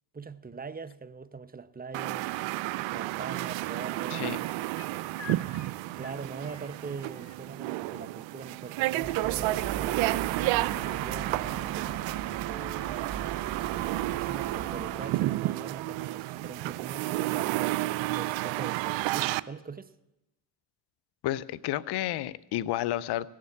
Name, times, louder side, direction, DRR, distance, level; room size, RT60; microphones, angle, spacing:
voice 1, 0.1-2.3 2.9-4.7 5.9-11.7 12.5-13.0 14.1-17.6 18.1-19.9, right 5 dB, 20° right, 0.8 m, -42 dB
sound 1, 1.9-19.4, right 18 dB, 65° right, 0.5 m, -31 dB
sound 2, 3.3-7.4 9.0-9.1, left 5 dB, 30° left, 1.4 m, -49 dB
sound 3, 9.0-15.1, right 8 dB, 45° right, 1.3 m, -38 dB
voice 2, 21.2-23.3, left 14 dB, 55° left, 0.6 m, -31 dB
17.0 x 7.3 x 8.5 m
hypercardioid pair, 50°, 49 cm